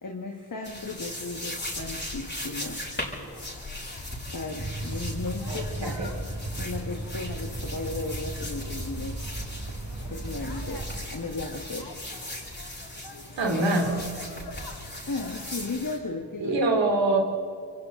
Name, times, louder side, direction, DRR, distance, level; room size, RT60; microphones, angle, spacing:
voice 1, 0.0-2.9 4.3-6.0 6.6-9.2 10.1-11.9 15.0-16.6, left 3 dB, 45° left, 3 dB, 2.0 m, -35 dB
sound 1, 0.6-16.0, left 1 dB, 25° left, 7.0 m, -39 dB
sound 2, 0.7-15.7, left 3 dB, 65° left, 2.7 m, -46 dB
sound 3, 4.6-11.0, right 1 dB, 45° right, 3.2 m, -35 dB
voice 2, 5.5-6.1 13.4-13.9 16.4-17.2, right 2 dB, 90° right, 2 dB, 3.4 m, -24 dB
28.5 x 23.0 x 4.0 m, 2.2 s
cardioid pair, 40°, 43 cm